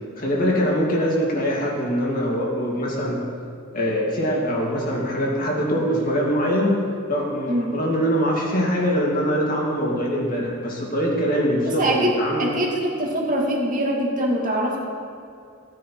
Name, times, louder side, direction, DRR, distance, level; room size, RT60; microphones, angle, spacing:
voice 1, 0.2-3.2 3.7-6.8 7.1-12.5, equal, 45° left, -3 dB, 2.5 m, -23 dB
voice 2, 11.6-14.8, right 1 dB, 40° right, -2 dB, 2.3 m, -23 dB
15.5 x 9.7 x 4.7 m, 2.4 s
head